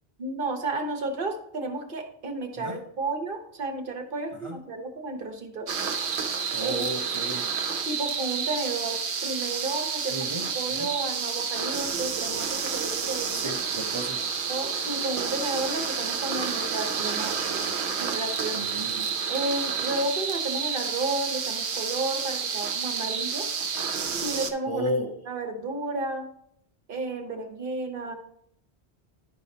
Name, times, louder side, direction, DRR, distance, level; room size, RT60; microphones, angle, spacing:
voice 1, 0.2-5.7 6.6-6.9 7.9-13.5 14.5-17.6 18.0-18.6 19.3-23.5 24.2-24.9 25.2-26.3 26.9-28.1, right 2 dB, 55° right, 4 dB, 1.2 m, -32 dB
sound 1, 5.7-24.5, right 6 dB, 90° right, 1.0 m, -30 dB
voice 2, 6.5-7.5 10.1-10.4 10.8-10.9 13.3-14.2 17.5-17.6 18.5-19.1 24.7-25.2, right 1 dB, 30° right, 1 dB, 0.9 m, -33 dB
11.0 x 4.9 x 2.8 m, 0.71 s
omnidirectional pair, 1.1 m